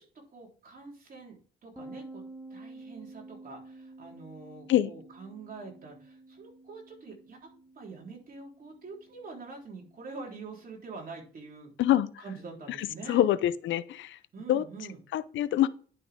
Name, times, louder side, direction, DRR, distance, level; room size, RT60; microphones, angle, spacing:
voice 1, 0.3-2.2 2.5-7.5 7.8-11.7 12.2-13.2 14.3-15.0, right 4 dB, 45° right, 3.7 m, -45 dB
sound 1, 1.8-11.2, right 2 dB, 5° right, 1.3 m, -51 dB
voice 2, 12.8-14.2 14.5-14.6 15.1-15.7, left 12 dB, 75° left, 0.6 m, -25 dB
10.5 x 6.0 x 3.6 m
cardioid pair, 90°, 20 cm